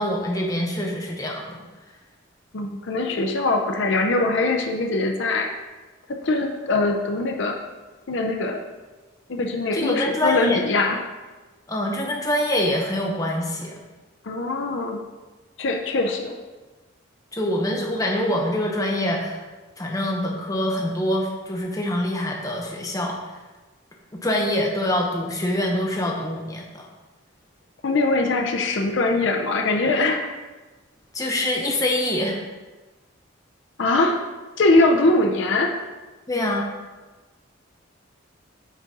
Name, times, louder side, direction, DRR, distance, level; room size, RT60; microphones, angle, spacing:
voice 1, 0.0-1.6 9.7-10.6 11.7-13.8 17.3-19.4 19.8-23.2 24.1-26.9 31.1-32.4 36.3-36.7, left 1 dB, 15° left, 0 dB, 0.7 m, -25 dB
voice 2, 2.5-5.5 6.1-7.6 8.1-8.6 9.3-11.0 14.2-15.0 15.6-16.3 27.8-30.3 33.8-34.2 34.6-35.8, left 2 dB, 60° left, 2 dB, 0.5 m, -22 dB
6.1 x 3.8 x 4.1 m, 1.2 s
head